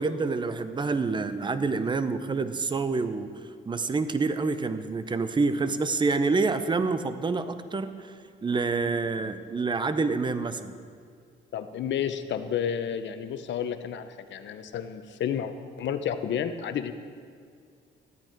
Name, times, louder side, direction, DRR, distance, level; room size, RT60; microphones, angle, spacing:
voice 1, 0.0-3.3 3.7-8.1 8.4-10.7, right 4 dB, 25° right, 11 dB, 0.6 m, -27 dB
voice 2, 11.5-16.9, left 8 dB, 65° left, 9 dB, 0.8 m, -31 dB
13.5 x 8.9 x 4.5 m, 2.2 s
cardioid pair, 90°, 20 cm